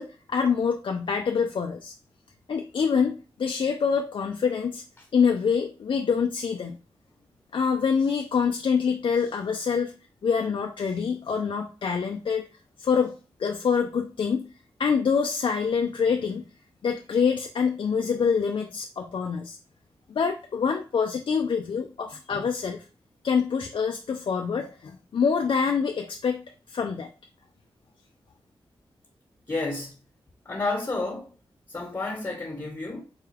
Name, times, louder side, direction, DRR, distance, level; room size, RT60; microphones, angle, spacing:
voice 1, 0.0-1.9 2.5-4.8 5.1-6.8 7.5-9.9 10.2-12.4 12.8-13.1 13.4-14.4 14.8-16.4 16.8-19.6 20.1-22.8 23.2-26.4 26.7-27.1, left 6 dB, 60° left, 0.4 m, -25 dB
voice 2, 29.5-30.0 30.4-31.3 31.7-33.0, left 3 dB, 30° left, 1.2 m, -30 dB
4.4 x 2.3 x 3.3 m
cardioid pair, 60°, 10 cm